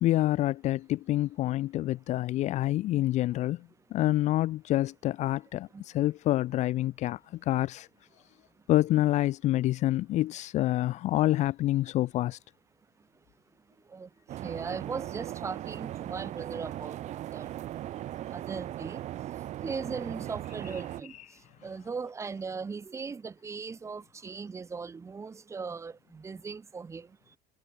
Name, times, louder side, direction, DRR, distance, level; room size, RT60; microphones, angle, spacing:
voice 1, 0.0-3.6 3.9-7.2 7.5-7.9 8.7-12.4, left 15 dB, 45° left, 0.7 m, -27 dB
sound 1, 14.3-21.0, right 13 dB, 45° right, 2.4 m, -38 dB
voice 2, 14.4-17.0 17.3-17.5 18.3-19.0 19.6-21.1 21.6-27.1, right 5 dB, 15° right, 2.9 m, -38 dB
cardioid pair, 160°, 17 cm